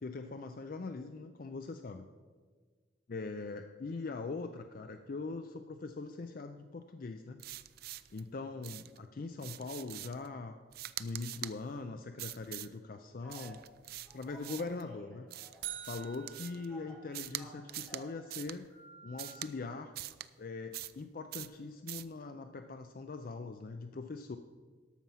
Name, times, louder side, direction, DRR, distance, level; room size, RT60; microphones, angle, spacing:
voice 1, 0.0-2.1 3.1-7.4 8.1-10.6 11.0-13.6 14.1-15.3 15.9-18.6 19.0-19.9 20.4-24.4, left 3 dB, 45° left, 7 dB, 0.4 m, -42 dB
sound 1, 7.4-8.2 8.6-9.0 9.4-10.3 10.7-11.6 12.2-12.7 13.3-14.8 15.3-16.7 17.1-17.4 17.7-18.0 18.3-18.6 19.2-19.5 20.0-20.3 20.7-21.0 21.3-21.6 21.9-22.1, right 14 dB, 50° right, 0.3 m, -44 dB
Telephone, 13.2-13.5 14.0-15.7 16.0-18.1 18.7-19.4, equal, 15° left, 3.5 m, -55 dB
sound 2, 15.6-17.7, right 12 dB, 65° right, 1.0 m, -46 dB
13.0 x 6.0 x 5.6 m, 1.5 s
head